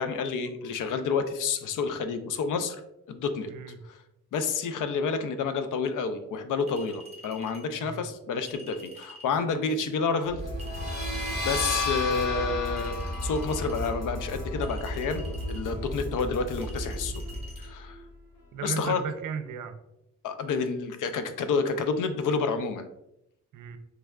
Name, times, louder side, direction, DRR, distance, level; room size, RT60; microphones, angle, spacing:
voice 1, 0.0-2.8 3.1-3.5 3.8-4.0 4.3-10.4 11.1-11.2 11.4-17.2 17.6-18.0 18.6-19.0 20.2-22.9, left 5 dB, 85° left, 9 dB, 0.5 m, -29 dB
voice 2, 3.5-3.8 7.7-8.1 18.5-19.7 23.5-23.8, right 7 dB, 85° right, 9 dB, 0.5 m, -35 dB
Chink clink, 6.7-7.7 8.5-9.3 10.6-11.9 12.8-13.9 14.6-15.7 16.6-17.7, equal, 20° right, 1.0 m, -49 dB
sound 1, 10.3-18.4, equal, 55° left, 1.2 m, -35 dB
sound 2, 10.6-16.1, left 3 dB, 35° left, 0.7 m, -35 dB
3.4 x 3.3 x 2.2 m, 0.84 s
wide cardioid pair, 120°, 31 cm